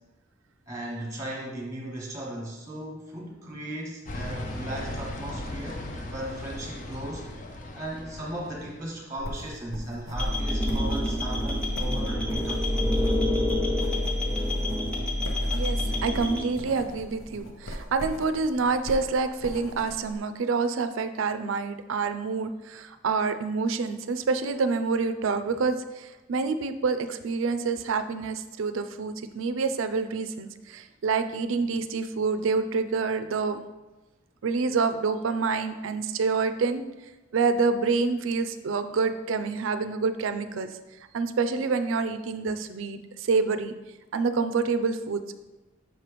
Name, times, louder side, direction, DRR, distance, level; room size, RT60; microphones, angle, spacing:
voice 1, 0.7-7.3 7.7-12.9, right 1 dB, 15° right, -2 dB, 1.2 m, -37 dB
sound 1, 4.1-8.9, left 1 dB, 40° left, 0.5 m, -37 dB
sound 2, 9.2-20.1, equal, 85° left, 0.9 m, -39 dB
sound 3, 10.1-16.4, left 1 dB, 5° left, 0.9 m, -27 dB
voice 2, 15.5-33.6 34.4-36.8 37.3-40.7 41.1-43.7 44.1-45.4, right 4 dB, 75° right, 10 dB, 0.4 m, -27 dB
6.5 x 3.0 x 4.9 m, 1.1 s
head